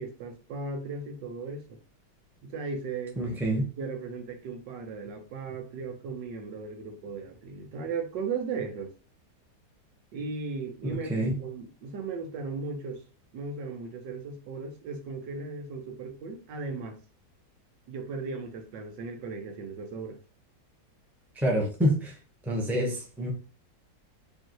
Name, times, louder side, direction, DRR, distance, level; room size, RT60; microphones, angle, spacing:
voice 1, 0.0-1.8 2.4-3.2 3.8-8.9 10.1-13.0 13.3-17.0 17.9-20.2, right 4 dB, 80° right, 1.5 m, -36 dB
voice 2, 3.2-3.7 10.8-11.4 21.3-22.1 22.5-23.3, equal, ahead, 0.9 m, -27 dB
5.1 x 3.2 x 3.1 m
omnidirectional pair, 1.9 m